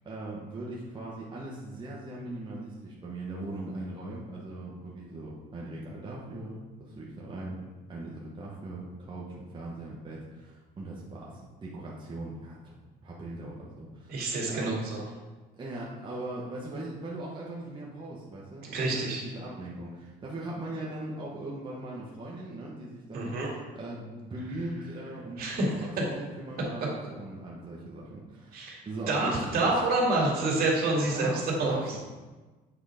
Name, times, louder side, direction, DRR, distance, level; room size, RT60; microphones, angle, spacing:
voice 1, 0.0-7.6 7.9-12.8 13.0-14.8 15.6-29.8 30.9-32.0, right 2 dB, 30° right, -5 dB, 1.3 m, -40 dB
voice 2, 14.1-15.0 18.6-19.2 23.1-23.5 25.4-25.9 28.5-28.8 29.1-31.3 31.6-32.0, right 2 dB, 65° right, -3 dB, 2.4 m, -27 dB
8.0 x 3.8 x 5.1 m, 1.3 s
cardioid pair, 110°, 17 cm